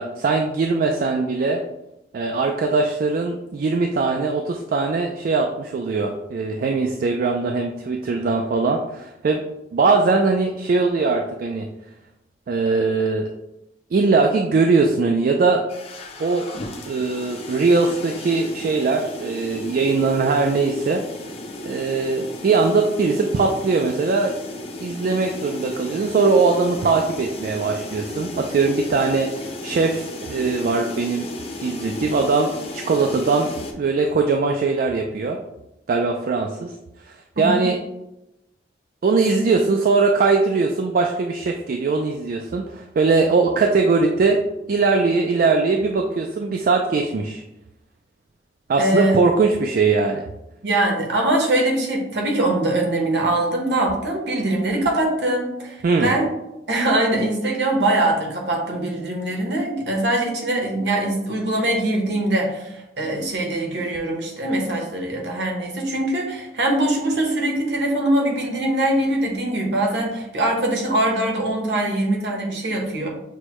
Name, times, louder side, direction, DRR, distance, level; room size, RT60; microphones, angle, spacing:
voice 1, 0.0-1.6 2.1-9.4 9.7-11.7 12.5-13.3 13.9-15.6 16.2-16.5 16.9-21.0 21.6-24.3 24.8-31.3 31.6-33.5 33.8-35.4 35.9-36.7 37.1-37.8 39.0-44.4 44.7-47.4 48.7-50.2 55.8-56.1, right 4 dB, 50° right, 3 dB, 0.3 m, -20 dB
sound 1, 15.7-33.7, left 1 dB, 35° left, 0.5 m, -34 dB
voice 2, 48.8-49.2 50.6-56.2 56.7-73.1, right 1 dB, 70° right, 0 dB, 1.0 m, -22 dB
6.3 x 2.1 x 3.0 m, 0.90 s
head